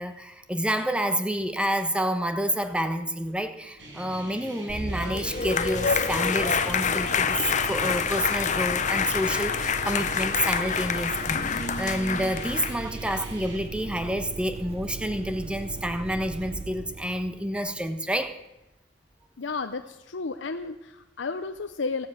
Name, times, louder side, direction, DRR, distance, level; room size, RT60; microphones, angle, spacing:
voice 1, 0.0-18.3, equal, 5° right, 8 dB, 1.2 m, -29 dB
sound 1, 3.8-13.6, right 2 dB, 70° right, 5.4 m, -43 dB
sound 2, 4.7-18.2, right 3 dB, 35° right, 0.5 m, -38 dB
sound 3, 4.9-12.7, left 6 dB, 40° left, 0.8 m, -27 dB
voice 2, 19.4-22.1, left 4 dB, 80° left, 8 dB, 0.7 m, -32 dB
15.5 x 13.5 x 6.5 m, 0.93 s
head